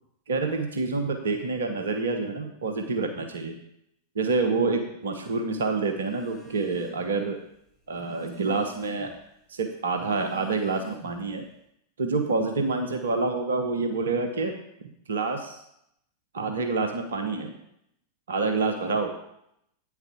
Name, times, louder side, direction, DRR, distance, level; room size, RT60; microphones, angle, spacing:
voice 1, 0.3-3.6 4.1-7.4 7.9-9.1 9.5-11.4 12.0-14.5 15.1-15.6 16.3-17.5 18.3-19.1, right 3 dB, 65° right, 5 dB, 1.1 m, -27 dB
Telephone, 5.9-7.2 7.5-9.2 9.8-11.3, right 2 dB, 20° left, 2.9 m, -47 dB
9.4 x 7.1 x 5.1 m, 0.77 s
figure-of-eight pair, 90°, 0 cm